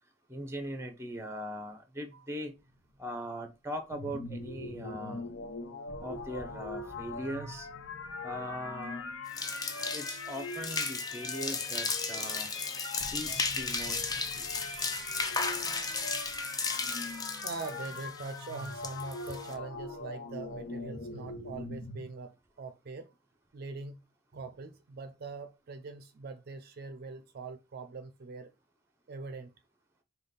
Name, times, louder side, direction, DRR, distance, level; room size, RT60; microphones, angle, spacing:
voice 1, 0.3-2.5 3.0-5.3 6.0-7.7 8.2-9.0 9.9-12.5 13.1-14.2, equal, 15° right, 0.7 m, -40 dB
sound 1, 2.5-3.9 4.2-4.3 5.3-5.4 5.9-11.2 11.5-11.6 12.2-12.3 13.0-18.2, right 1 dB, 55° left, 1.0 m, -54 dB
sound 2, 3.9-22.1, left 3 dB, 85° left, 0.6 m, -41 dB
sound 3, 9.3-19.5, left 4 dB, 20° left, 0.5 m, -35 dB
voice 2, 12.8-13.9 14.4-15.7 17.4-23.1 23.5-24.0 24.3-28.5 29.1-29.5, right 4 dB, 50° right, 0.4 m, -43 dB
5.1 x 2.3 x 3.8 m
head